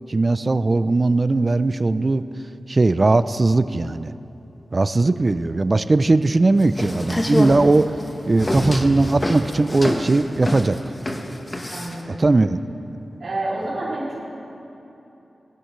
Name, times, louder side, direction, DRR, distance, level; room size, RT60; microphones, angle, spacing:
voice 1, 0.1-2.3 2.7-4.1 4.7-7.9 8.3-10.8 12.1-12.6, right 2 dB, 40° right, 13 dB, 0.4 m, -19 dB
sound 1, 6.6-12.0, left 1 dB, 25° left, 1.1 m, -26 dB
voice 2, 11.6-12.2 13.2-14.2, right 2 dB, 70° right, -8 dB, 2.6 m, -28 dB
21.0 x 10.0 x 3.2 m, 3.0 s
wide cardioid pair, 75°, 0 cm